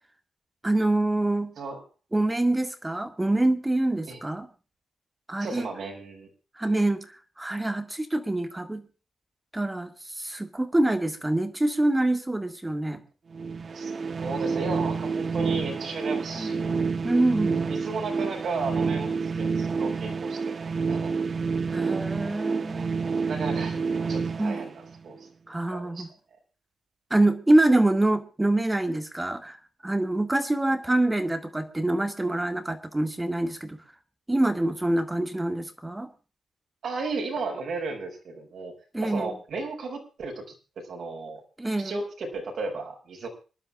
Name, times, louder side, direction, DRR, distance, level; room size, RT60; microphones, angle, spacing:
voice 1, 0.6-1.5 2.1-4.5 5.3-5.7 6.6-7.1 7.4-8.8 9.5-9.9 10.2-13.0 16.4-16.5 17.0-17.7 21.7-22.9 24.4-24.6 25.5-26.1 27.1-29.6 29.8-33.8 34.3-36.1 38.9-39.3 41.6-42.0, right 1 dB, 10° right, 7 dB, 1.9 m, -25 dB
voice 2, 5.4-6.3 6.7-6.8 13.7-13.9 14.2-16.7 17.7-21.5 23.3-23.8 24.1-25.2 25.7-26.1 36.8-38.7 39.0-40.4 40.8-41.4 41.8-43.3, right 3 dB, 65° right, 2 dB, 5.4 m, -34 dB
sound 1, 13.3-25.2, right 5 dB, 45° right, 0.9 m, -29 dB
27.0 x 11.5 x 2.4 m, 0.35 s
cardioid pair, 125°, 0 cm